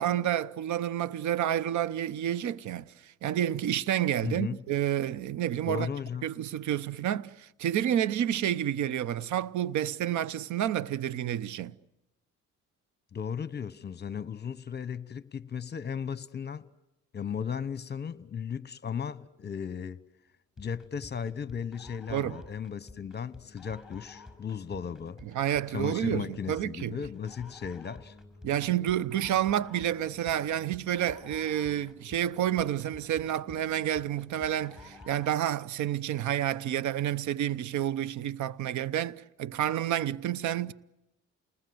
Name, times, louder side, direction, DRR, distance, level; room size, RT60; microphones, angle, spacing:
voice 1, 0.0-5.9 6.2-11.7 22.1-22.4 25.2-27.0 28.4-40.7, right 11 dB, 75° right, 0.8 m, -29 dB
voice 2, 4.2-4.6 5.7-6.3 13.1-16.7 17.1-20.0 20.6-25.2 25.7-28.1, left 7 dB, 35° left, 1.0 m, -36 dB
sound 1, 20.6-35.5, left 3 dB, ahead, 5.2 m, -51 dB
29.0 x 20.5 x 7.9 m
cardioid pair, 90°, 30 cm